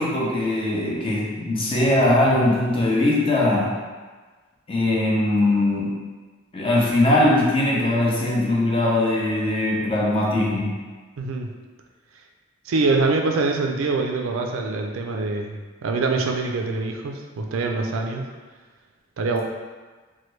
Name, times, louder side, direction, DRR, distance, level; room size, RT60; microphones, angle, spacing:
voice 1, 0.0-3.8 4.7-5.9 6.5-10.7, left 1 dB, 25° left, -4 dB, 0.6 m, -20 dB
voice 2, 11.2-11.5 12.7-18.2 19.2-19.4, right 3 dB, 85° right, 3 dB, 0.4 m, -24 dB
3.1 x 2.2 x 3.1 m, 1.3 s
head